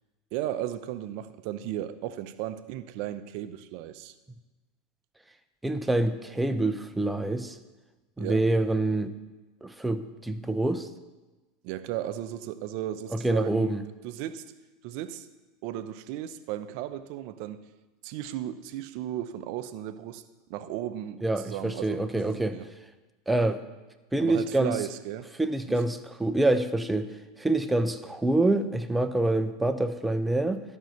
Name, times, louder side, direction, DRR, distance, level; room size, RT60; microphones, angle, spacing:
voice 1, 0.3-4.1 8.2-8.4 11.6-13.8 14.0-14.5 14.8-15.3 15.6-17.6 18.0-20.2 20.5-22.6 24.2-25.3 25.7-25.8, right 12 dB, 60° right, 0.6 m, -35 dB
voice 2, 5.6-7.6 8.2-9.1 9.6-10.9 13.1-13.8 21.2-22.6 23.3-23.6 24.1-24.8 25.4-30.6, right 2 dB, 10° right, 0.7 m, -26 dB
11.5 x 5.5 x 6.5 m
hypercardioid pair, 85°, 0 cm